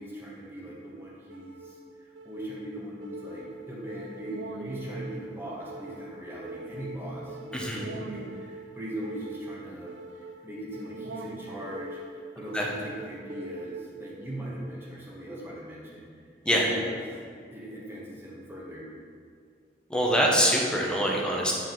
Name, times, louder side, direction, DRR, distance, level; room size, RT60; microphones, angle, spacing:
voice 1, 0.0-16.1 16.4-17.1 17.5-18.9, right 1 dB, 15° right, -6 dB, 1.5 m, -40 dB
sound 1, 1.3-14.3, right 2 dB, 85° right, 0.4 m, -42 dB
voice 2, 19.9-21.5, equal, 5° left, -2 dB, 1.0 m, -24 dB
9.1 x 4.7 x 3.9 m, 2.1 s
head